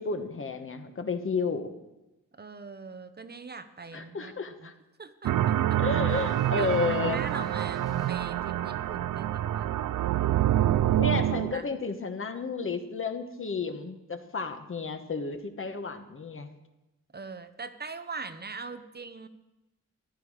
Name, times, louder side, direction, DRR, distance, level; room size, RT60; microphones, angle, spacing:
voice 1, 0.0-1.7 3.9-4.7 5.8-7.2 11.0-16.5, left 4 dB, 40° left, 7 dB, 1.2 m, -32 dB
voice 2, 2.4-4.3 4.6-4.7 5.0-5.8 6.5-9.7 11.5-11.7 17.1-19.3, right 4 dB, 30° right, 10 dB, 0.7 m, -41 dB
sound 1, 5.2-11.5, right 12 dB, 80° right, 0.5 m, -26 dB
sound 2, 6.1-8.5, equal, 10° left, 2.1 m, -51 dB
14.0 x 11.0 x 4.9 m, 1.0 s
wide cardioid pair, 110°, 31 cm